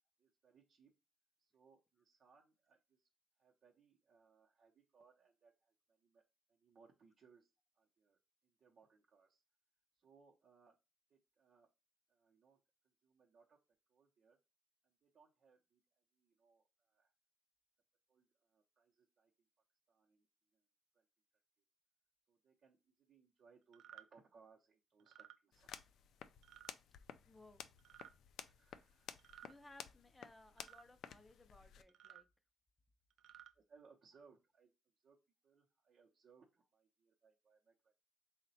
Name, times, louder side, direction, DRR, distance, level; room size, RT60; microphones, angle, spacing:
voice 1, 0.2-0.9 1.4-3.1 3.4-6.2 6.5-7.5 7.8-8.2 8.4-9.4 10.0-10.7 11.1-11.7 12.1-12.6 13.0-13.6 13.9-14.4 14.8-15.8 16.1-17.1 18.1-19.3 19.9-20.3 20.9-21.0 22.3-25.7 28.4-29.1 33.5-35.2 35.4-38.0, right 5 dB, 55° right, -1 dB, 0.7 m, -69 dB
sound 1, 23.7-24.0 25.0-25.4 26.4-26.7 27.8-28.1 29.2-29.5 30.6-30.8 31.9-32.2 33.1-33.5, right 11 dB, 90° right, 0.3 m, -58 dB
sound 2, 25.5-31.8, left 9 dB, 80° left, 0.3 m, -55 dB
voice 2, 27.2-27.7 29.4-32.3, left 2 dB, 15° left, 9 dB, 0.5 m, -62 dB
3.9 x 2.1 x 4.0 m, 0.28 s
cardioid pair, 130°, 0 cm